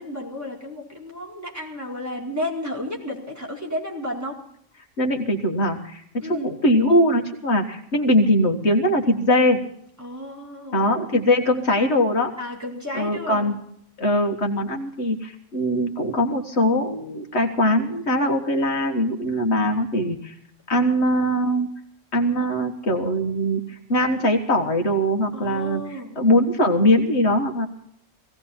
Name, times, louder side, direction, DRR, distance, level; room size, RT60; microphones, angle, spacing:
voice 1, 0.0-4.4 6.2-6.5 10.0-10.9 12.4-13.5 25.3-26.1, left 1 dB, 15° right, -3 dB, 4.6 m, -32 dB
voice 2, 5.0-9.6 10.7-12.3 12.9-13.5 14.0-20.3 20.7-21.7 22.1-27.7, equal, 65° left, 3 dB, 1.8 m, -21 dB
18.5 x 16.5 x 4.3 m, 0.67 s
omnidirectional pair, 1.3 m